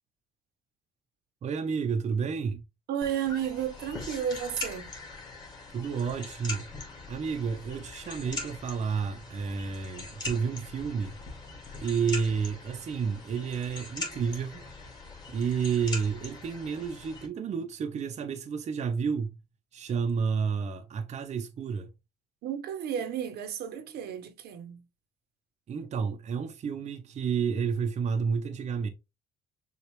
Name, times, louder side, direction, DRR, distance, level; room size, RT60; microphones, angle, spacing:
voice 1, 1.4-2.6 5.7-6.7 7.1-11.2 11.8-14.7 15.3-19.3 19.7-21.9 25.7-28.9, right 6 dB, 40° right, 0.6 m, -30 dB
voice 2, 2.9-4.9 22.4-24.8, right 9 dB, 70° right, 0.9 m, -32 dB
sound 1, 3.0-17.3, left 3 dB, 25° left, 2.0 m, -42 dB
6.5 x 2.4 x 3.1 m
cardioid pair, 110°, 17 cm